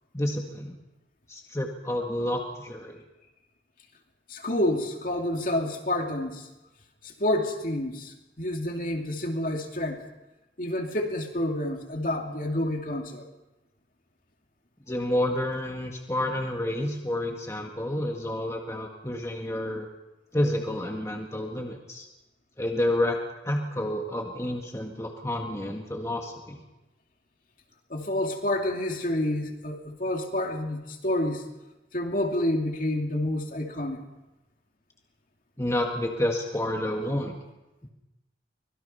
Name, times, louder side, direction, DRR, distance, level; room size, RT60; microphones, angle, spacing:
voice 1, 0.1-0.8 1.3-3.0 14.9-19.9 20.3-22.1 22.6-23.2 23.4-26.6 35.6-37.4, left 1 dB, 15° left, 1 dB, 1.8 m, -29 dB
voice 2, 4.3-6.5 7.0-10.0 10.6-13.3 27.9-31.4 31.9-34.0, left 1 dB, 45° left, 2 dB, 2.6 m, -29 dB
24.5 x 21.0 x 5.6 m, 1.0 s
head